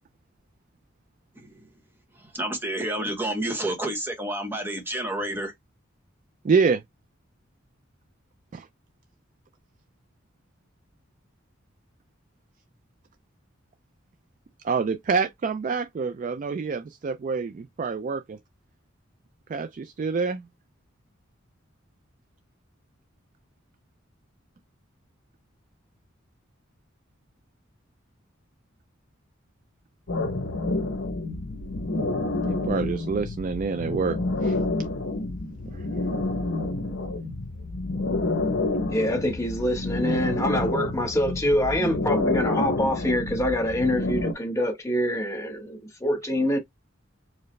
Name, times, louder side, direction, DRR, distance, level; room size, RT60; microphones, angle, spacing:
voice 1, 1.4-1.7 2.2-5.5, right 1 dB, 10° right, 1.1 m, -30 dB
voice 2, 6.4-6.8 8.5-8.7 14.6-18.4 19.5-20.4 32.5-34.6 35.7-35.8, right 5 dB, 40° right, 0.3 m, -27 dB
sound 1, 30.1-44.3, left 2 dB, 60° left, 0.8 m, -28 dB
voice 3, 38.9-46.6, left 1 dB, 15° left, 1.0 m, -25 dB
4.6 x 2.1 x 3.2 m
head